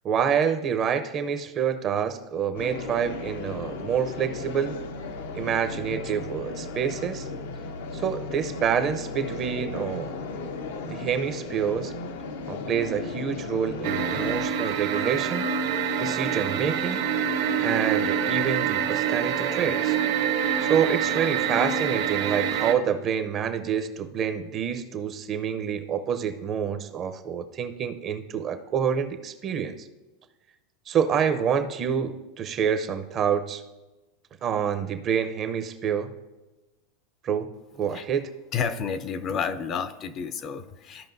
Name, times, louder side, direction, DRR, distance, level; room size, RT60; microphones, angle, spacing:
voice 1, 0.0-4.8 5.3-7.3 7.9-10.2 10.8-11.9 12.5-15.5 16.0-17.0 17.6-20.0 20.6-29.9 30.9-33.6 34.4-36.1 37.2-38.3, right 7 dB, 35° right, 9 dB, 0.7 m, -27 dB
sound 1, 2.6-14.5, left 3 dB, 85° left, 0.8 m, -35 dB
sound 2, 13.8-22.7, right 7 dB, 65° right, 1.0 m, -26 dB
voice 2, 38.5-41.1, left 6 dB, 35° left, 12 dB, 0.5 m, -30 dB
14.0 x 5.2 x 2.6 m, 1.1 s
supercardioid pair, 135°, 0 cm